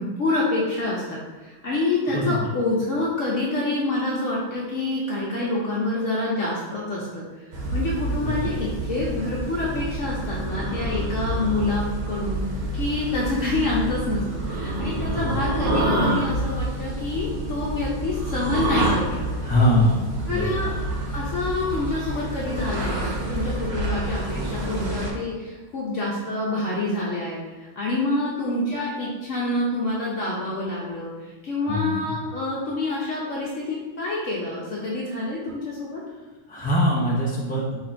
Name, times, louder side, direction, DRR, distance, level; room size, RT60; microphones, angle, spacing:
voice 1, 0.0-7.2 7.7-12.4 12.8-19.2 20.3-20.7 21.1-27.4 27.8-36.0, left 2 dB, 60° left, -5 dB, 1.1 m, -27 dB
voice 2, 2.1-2.5 8.2-8.7 15.1-15.4 16.0-16.3 19.4-20.7 24.3-24.6 31.7-32.2 36.5-37.8, equal, 15° left, -5 dB, 0.3 m, -24 dB
sound 1, 7.5-25.1, right 1 dB, 85° right, 1.2 m, -28 dB
4.1 x 3.0 x 4.3 m, 1.2 s
omnidirectional pair, 1.5 m